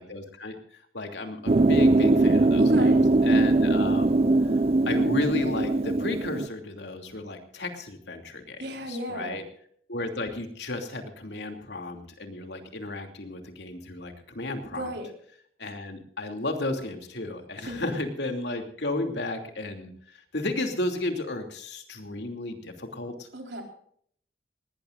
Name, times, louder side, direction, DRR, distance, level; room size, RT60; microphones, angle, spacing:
voice 1, 0.0-2.9 3.2-4.5 4.8-9.4 9.9-14.9 15.6-23.3, left 2 dB, 75° left, 4 dB, 2.8 m, -33 dB
sound 1, 1.5-6.5, right 2 dB, 35° right, 0.5 m, -21 dB
voice 2, 2.6-3.0 8.6-9.4 14.7-15.1 17.6-17.9 23.3-23.6, right 1 dB, 75° right, 2 dB, 4.3 m, -35 dB
19.5 x 19.0 x 2.6 m, 0.62 s
head